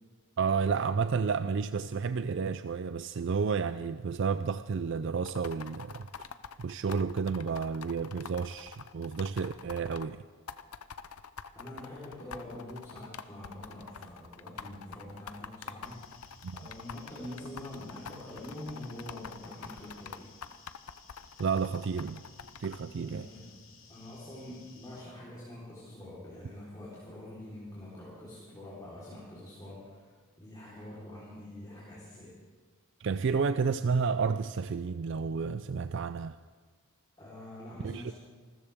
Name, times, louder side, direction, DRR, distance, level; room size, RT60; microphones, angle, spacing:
voice 1, 0.4-6.1 6.6-10.2 16.4-16.6 21.4-22.2 22.6-23.3 33.0-36.4 37.8-38.1, right 5 dB, 55° right, 11 dB, 0.4 m, -31 dB
sound 1, 5.2-10.1 10.5-22.8, left 6 dB, 80° left, 0.6 m, -45 dB
voice 2, 11.5-16.1 16.5-20.3 23.0-23.6 23.9-30.1 30.4-32.3 37.2-38.1, left 1 dB, 20° left, -8 dB, 3.9 m, -45 dB
sound 2, 15.8-25.0, left 4 dB, 60° left, 2.5 m, -57 dB
27.5 x 13.5 x 3.6 m, 1.5 s
head